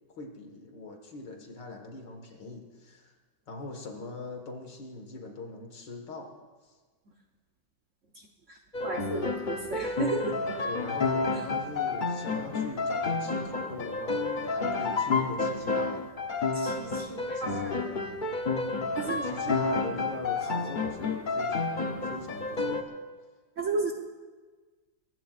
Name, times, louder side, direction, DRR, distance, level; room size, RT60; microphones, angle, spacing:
voice 1, 0.1-3.1 3.5-6.4 10.6-16.2 17.3-17.6 19.0-23.0, left 2 dB, 65° left, 3 dB, 2.3 m, -41 dB
sound 1, 8.7-22.8, left 3 dB, 45° left, 0.6 m, -30 dB
voice 2, 8.8-10.4 16.5-18.0 19.0-19.8 23.6-24.0, right 3 dB, 50° right, 1 dB, 1.1 m, -34 dB
23.5 x 19.5 x 2.5 m, 1.4 s
omnidirectional pair, 2.1 m